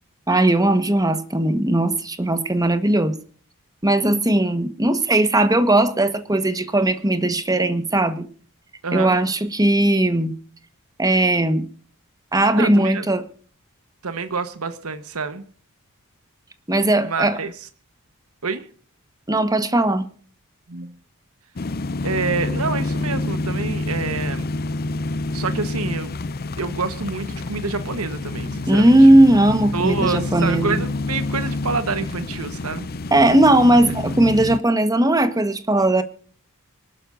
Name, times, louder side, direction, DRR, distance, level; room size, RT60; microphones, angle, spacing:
voice 1, 0.3-3.2 3.8-8.3 8.9-10.3 11.0-11.7 12.3-13.2 16.7-17.4 19.3-20.0 28.7-30.8 33.1-36.0, right 1 dB, 15° right, 1.3 m, -18 dB
voice 2, 8.8-9.2 12.6-13.1 14.0-15.4 17.0-17.5 18.4-18.7 20.7-21.0 22.0-24.4 25.3-26.1 26.6-29.0 29.7-32.9, right 4 dB, 75° right, 1.2 m, -27 dB
sound 1, 21.6-34.6, left 2 dB, 45° left, 0.6 m, -28 dB
25.0 x 12.0 x 2.6 m
head